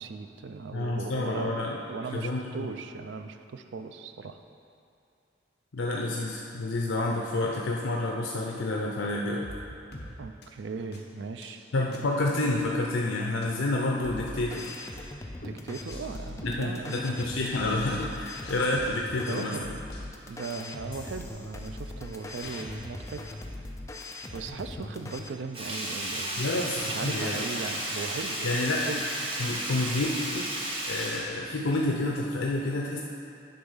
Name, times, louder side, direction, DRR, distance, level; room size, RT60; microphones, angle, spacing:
voice 1, 0.0-1.6 1.9-4.4 10.2-11.6 15.4-17.0 19.2-19.7 20.3-23.3 24.3-28.6 28.9-29.0, right 4 dB, 70° right, 8 dB, 0.4 m, -38 dB
voice 2, 0.7-1.8 2.1-2.7 5.7-9.5 11.7-14.7 16.4-19.5 26.4-27.4 28.4-28.9 29.4-30.5 30.9-33.0, left 2 dB, 90° left, -1 dB, 0.6 m, -29 dB
sound 1, 9.4-9.6 9.9-10.1 10.4-10.5 10.9-11.0 11.4-11.6 11.9-12.0 12.4-13.1 13.4-13.5 13.9-14.5 14.9-15.1 15.4-18.1 18.4-19.3 19.9-20.0 20.9-21.9 22.4-22.7, left 1 dB, 55° left, 1.0 m, -46 dB
sound 2, 14.0-25.3, left 2 dB, 15° left, 0.4 m, -40 dB
Sink (filling or washing), 25.5-32.1 32.4-32.5, right 1 dB, 30° right, 1.0 m, -33 dB
9.5 x 3.9 x 5.6 m, 2.6 s
head